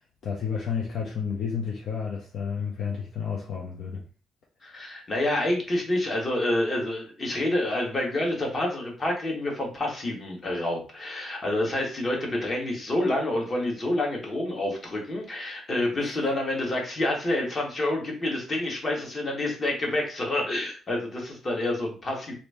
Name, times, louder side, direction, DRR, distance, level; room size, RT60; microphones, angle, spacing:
voice 1, 0.2-4.0 16.0-16.2, left 6 dB, 65° left, -2 dB, 0.7 m, -31 dB
voice 2, 4.6-22.3, left 1 dB, 35° left, 0 dB, 1.4 m, -28 dB
2.9 x 2.7 x 3.4 m, 0.36 s
cardioid pair, 90°, 0 cm